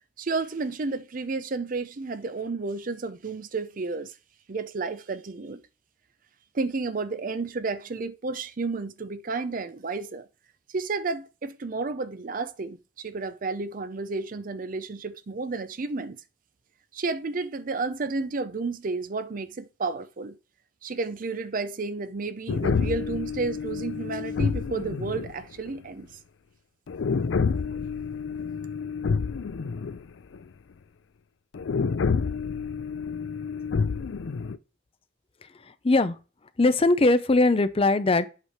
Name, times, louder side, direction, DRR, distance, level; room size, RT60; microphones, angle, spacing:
voice 1, 0.2-4.1 4.5-5.6 6.5-10.3 10.7-16.2 16.9-20.4 20.8-26.1 27.7-27.8, right 3 dB, 50° right, 0.5 m, -31 dB
sound 1, 22.5-25.8 26.9-30.0 30.3-30.4 31.5-34.6, left 5 dB, 90° left, 0.4 m, -28 dB
voice 2, 35.6-36.2 36.6-38.3, left 2 dB, 30° left, 0.5 m, -21 dB
8.1 x 3.3 x 5.8 m
head